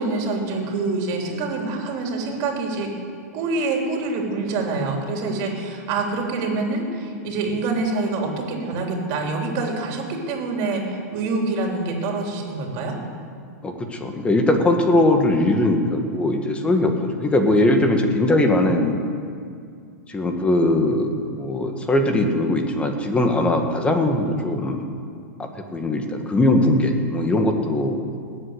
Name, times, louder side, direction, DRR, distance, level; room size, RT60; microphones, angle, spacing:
voice 1, 0.0-2.9 3.3-13.0, right 3 dB, 45° right, 1 dB, 3.6 m, -26 dB
voice 2, 13.6-19.0 20.1-24.9 25.4-28.0, left 1 dB, 15° left, 5 dB, 1.7 m, -20 dB
19.5 x 8.4 x 8.2 m, 2.3 s
hypercardioid pair, 130°, 9 cm